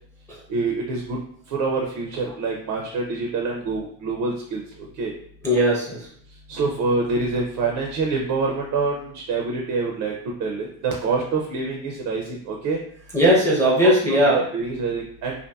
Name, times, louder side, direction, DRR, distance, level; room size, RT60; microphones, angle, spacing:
voice 1, 0.5-1.2 1.5-5.1 6.5-12.8 13.8-15.3, right 4 dB, 50° right, 0 dB, 0.5 m, -26 dB
voice 2, 5.4-6.1 13.1-14.4, equal, 5° left, -6 dB, 0.6 m, -18 dB
2.7 x 2.4 x 2.2 m, 0.63 s
cardioid pair, 140°, 42 cm